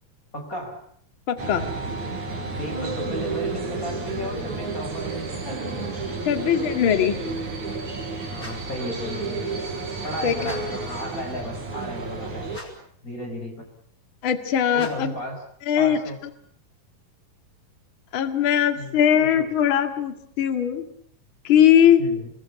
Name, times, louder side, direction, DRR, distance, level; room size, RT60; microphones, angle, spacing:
voice 1, 0.3-0.8 2.5-5.8 8.2-9.5 10.0-12.5 13.0-13.7 14.7-15.4 15.8-16.2 18.8-19.5 22.0-22.3, equal, 25° left, 3 dB, 5.4 m, -34 dB
voice 2, 1.3-1.7 6.2-7.2 10.2-10.5 14.2-15.1 15.7-16.0 18.1-20.9 21.4-22.0, left 9 dB, 40° left, 8 dB, 2.3 m, -20 dB
sound 1, 1.4-12.6, right 3 dB, 55° right, 5.6 m, -31 dB
sound 2, 8.3-8.8 10.4-10.9 12.5-13.0 14.7-15.2, equal, 5° left, 7.3 m, -42 dB
29.0 x 21.0 x 7.0 m, 0.63 s
omnidirectional pair, 4.0 m